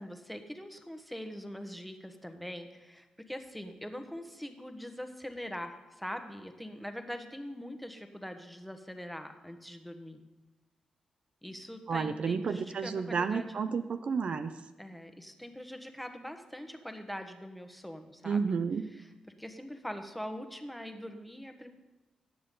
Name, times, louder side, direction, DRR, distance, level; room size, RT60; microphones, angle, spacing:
voice 1, 0.0-10.2 11.4-13.6 14.8-18.4 18.9-19.1 19.4-21.7, equal, ahead, 6 dB, 1.2 m, -43 dB
voice 2, 11.9-14.5 18.2-18.9, right 5 dB, 60° right, 10 dB, 0.5 m, -31 dB
17.5 x 6.8 x 3.9 m, 1.1 s
cardioid pair, 70°, 2 cm